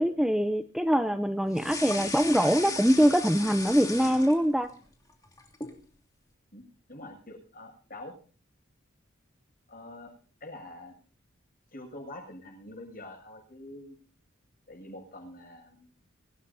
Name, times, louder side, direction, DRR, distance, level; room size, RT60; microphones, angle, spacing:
voice 1, 0.0-4.7, equal, ahead, 9 dB, 0.6 m, -24 dB
sound 1, 1.5-4.7 5.1-5.8, left 3 dB, 20° left, 2.8 m, -36 dB
voice 2, 6.5-8.2 9.7-10.1 10.4-10.9 11.7-14.0 14.7-15.9, left 1 dB, 45° left, 2 dB, 7.4 m, -45 dB
24.5 x 16.0 x 2.8 m, 0.42 s
head